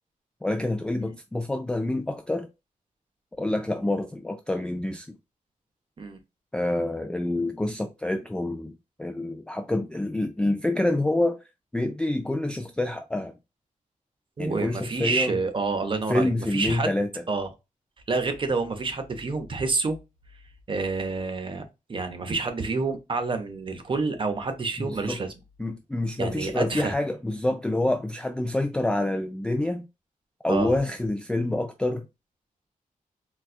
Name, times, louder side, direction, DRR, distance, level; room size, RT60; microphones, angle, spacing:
voice 1, 0.4-2.5 3.4-5.2 6.5-8.7 9.0-11.4 11.7-13.3 14.4-15.3 16.1-17.2 24.8-25.2 25.6-29.9 30.4-32.1, left 1 dB, 5° left, 0.3 m, -27 dB
voice 2, 14.4-16.9 17.3-17.5 18.1-20.0 20.7-21.6 21.9-25.3 26.2-26.9 30.5-30.7, right 3 dB, 35° right, 0.7 m, -28 dB
4.1 x 2.3 x 2.4 m
wide cardioid pair, 140°, 14 cm